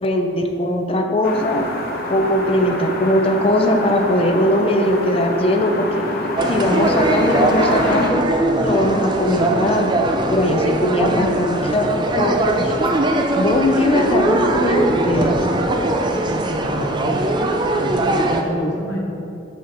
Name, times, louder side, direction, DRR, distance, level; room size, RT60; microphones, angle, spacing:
voice 1, 0.0-1.7 2.1-6.1 6.5-8.2 8.6-9.9 10.3-11.9 12.1-12.7 13.4-15.4, left 1 dB, 30° left, 3 dB, 0.5 m, -19 dB
sound 1, 1.2-8.1, left 1 dB, 55° left, 0.8 m, -27 dB
sound 2, 6.4-18.4, right 1 dB, 25° right, 0.4 m, -20 dB
voice 2, 16.2-17.2 17.7-19.0, equal, 75° left, -1 dB, 1.1 m, -28 dB
6.1 x 5.7 x 4.4 m, 2.8 s
head